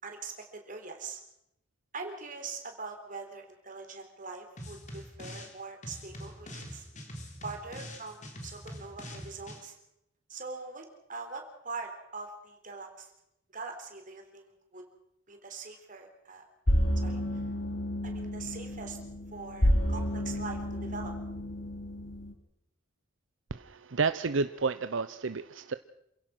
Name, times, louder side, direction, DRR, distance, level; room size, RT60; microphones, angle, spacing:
voice 1, 0.0-1.2 1.9-6.9 7.4-9.8 10.3-13.1 13.5-14.8 15.3-16.4 17.0-17.4 18.0-19.0 19.3-21.1, right 4 dB, 45° right, 4 dB, 3.9 m, -43 dB
sound 1, 4.6-5.5 5.8-9.6, equal, 40° left, 3.8 m, -44 dB
sound 2, 16.7-22.3, equal, 70° left, 2.4 m, -30 dB
voice 2, 23.5-25.7, right 4 dB, 75° right, 12 dB, 0.7 m, -31 dB
27.5 x 16.5 x 6.1 m, 0.80 s
head